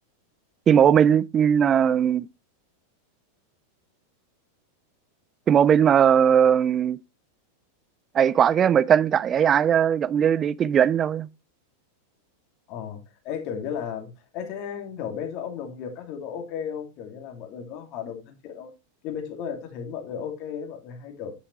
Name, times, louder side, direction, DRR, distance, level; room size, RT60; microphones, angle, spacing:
voice 1, 0.7-2.3 5.5-7.0 8.1-11.3, right 8 dB, 25° right, 0.4 m, -19 dB
voice 2, 12.7-18.7 19.0-21.3, left 7 dB, 40° left, 2.5 m, -35 dB
9.9 x 8.2 x 3.2 m
figure-of-eight pair, 90°, 0 cm